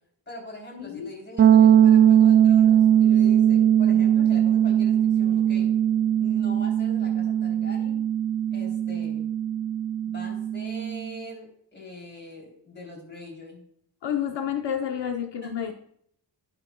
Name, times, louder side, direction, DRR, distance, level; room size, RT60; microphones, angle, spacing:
voice 1, 0.3-5.7 6.2-8.0 8.5-9.3 10.0-13.7 15.4-15.5, left 1 dB, 25° left, -2 dB, 3.3 m, -42 dB
voice 2, 0.8-1.1 14.0-15.7, left 9 dB, 80° left, 5 dB, 0.9 m, -29 dB
sound 1, 1.4-11.1, right 10 dB, 30° right, 0.4 m, -20 dB
16.0 x 6.1 x 2.3 m, 0.66 s
wide cardioid pair, 150°, 41 cm